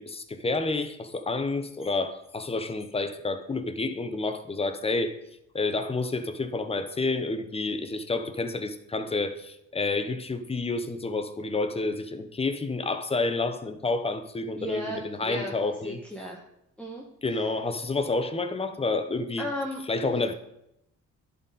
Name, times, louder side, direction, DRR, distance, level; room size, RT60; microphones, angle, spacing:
voice 1, 0.0-5.2 5.5-16.0 17.2-19.5 19.9-20.3, left 3 dB, 20° left, 9 dB, 0.7 m, -29 dB
voice 2, 14.6-16.4 16.8-17.0 17.3-17.4 19.4-20.1, left 1 dB, 5° left, -2 dB, 1.1 m, -36 dB
11.0 x 4.2 x 4.0 m, 0.82 s
cardioid pair, 90°, 30 cm